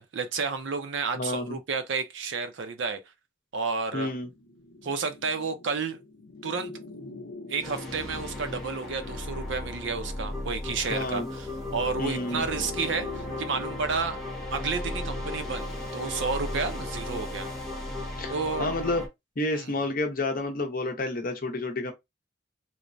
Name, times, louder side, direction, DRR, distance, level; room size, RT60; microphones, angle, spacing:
voice 1, 0.0-3.0 3.5-4.1 4.8-6.0 6.4-6.7 7.0-14.2 14.5-17.5 18.3-18.7 19.6-19.7, right 4 dB, 65° right, 0.5 m, -31 dB
voice 2, 1.1-1.6 3.9-4.3 10.8-11.3 12.0-12.5 18.2-18.3 18.6-19.0 19.4-21.9, left 2 dB, 45° left, 0.6 m, -30 dB
sound 1, 4.2-16.6, left 2 dB, 85° left, 0.7 m, -46 dB
sound 2, 7.6-19.1, left 1 dB, ahead, 0.8 m, -35 dB
3.1 x 2.1 x 2.5 m
head